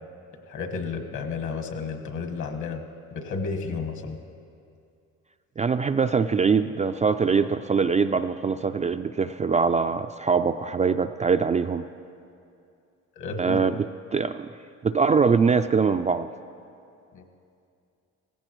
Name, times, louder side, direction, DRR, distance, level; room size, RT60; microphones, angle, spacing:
voice 1, 0.5-2.8 3.1-4.2 13.2-13.6 17.1-17.2, left 4 dB, 60° left, 4 dB, 1.7 m, -32 dB
voice 2, 5.6-11.8 13.4-13.9 14.1-14.5 14.8-16.3, right 5 dB, 25° right, 8 dB, 0.3 m, -23 dB
17.5 x 15.5 x 3.1 m, 2.5 s
supercardioid pair, 70°, 33 cm